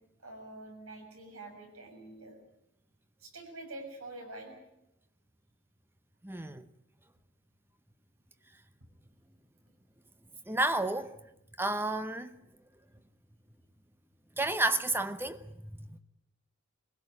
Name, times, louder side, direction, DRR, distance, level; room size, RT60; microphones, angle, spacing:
voice 1, 0.2-2.3 3.2-4.6, right 2 dB, 85° right, 6.8 m, -46 dB
voice 2, 6.2-6.7 10.5-11.1 11.6-12.4 14.4-16.0, right 2 dB, 10° right, 0.8 m, -31 dB
22.5 x 16.5 x 9.7 m
head